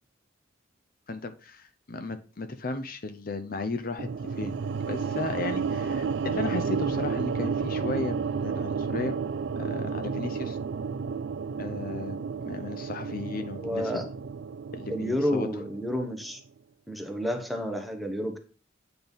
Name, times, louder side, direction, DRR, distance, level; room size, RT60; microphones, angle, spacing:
voice 1, 1.1-4.1 4.4-4.5 4.9-9.2 9.6-10.6 11.6-13.9 14.7-15.5, left 3 dB, 45° left, 8 dB, 0.7 m, -35 dB
sound 1, 4.0-16.2, right 5 dB, 65° right, 0.4 m, -32 dB
voice 2, 13.6-14.1 14.9-16.4 16.9-18.4, equal, ahead, 5 dB, 1.0 m, -30 dB
8.9 x 4.0 x 5.3 m, 0.36 s
head